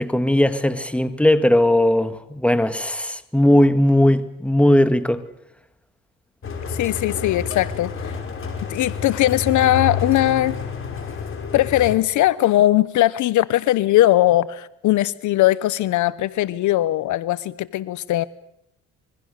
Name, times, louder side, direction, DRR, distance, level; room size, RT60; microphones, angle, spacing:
voice 1, 0.0-5.2, left 1 dB, 5° left, 2.0 m, -18 dB
sound 1, 6.4-11.9, left 5 dB, 45° left, 5.6 m, -29 dB
voice 2, 6.7-8.1 8.7-10.6 11.5-18.3, left 15 dB, 70° left, 0.9 m, -19 dB
26.5 x 23.0 x 6.6 m
supercardioid pair, 80°, 31 cm